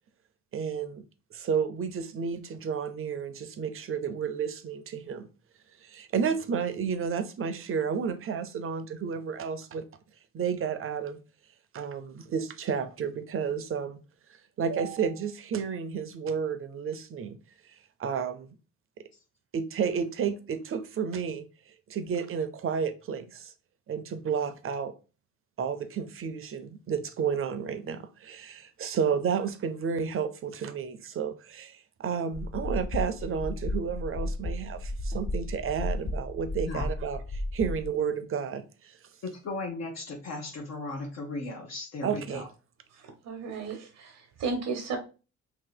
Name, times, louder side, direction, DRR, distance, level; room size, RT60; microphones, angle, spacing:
voice 1, 0.5-1.0 1.3-5.3 5.8-9.8 10.3-11.2 11.7-14.0 14.6-17.4 18.0-18.5 19.5-21.5 21.9-23.5 23.9-24.9 25.6-37.2 37.5-38.6 42.0-42.4, right 6 dB, 45° right, 0.6 m, -31 dB
sound 1, 32.3-37.9, left 1 dB, 25° left, 0.4 m, -33 dB
voice 2, 39.2-42.5, left 2 dB, 60° left, 0.8 m, -36 dB
voice 3, 42.9-45.0, right 4 dB, 80° right, 0.8 m, -34 dB
2.8 x 2.8 x 3.9 m
cardioid pair, 90°, 30 cm